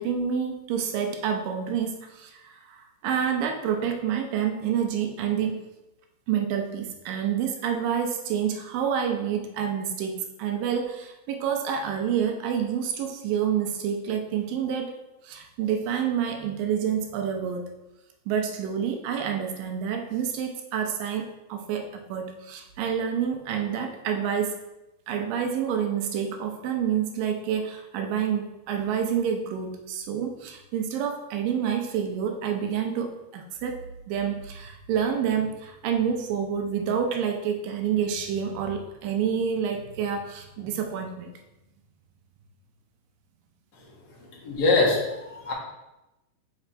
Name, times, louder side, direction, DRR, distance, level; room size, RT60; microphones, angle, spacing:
voice 1, 0.0-5.6 6.3-14.9 15.2-17.7 18.3-24.6 25.1-33.8 34.1-41.3, right 8 dB, 80° right, 4 dB, 2.4 m, -28 dB
voice 2, 44.2-45.5, left 3 dB, 45° left, -4 dB, 1.3 m, -24 dB
5.9 x 4.3 x 4.3 m, 0.94 s
omnidirectional pair, 4.0 m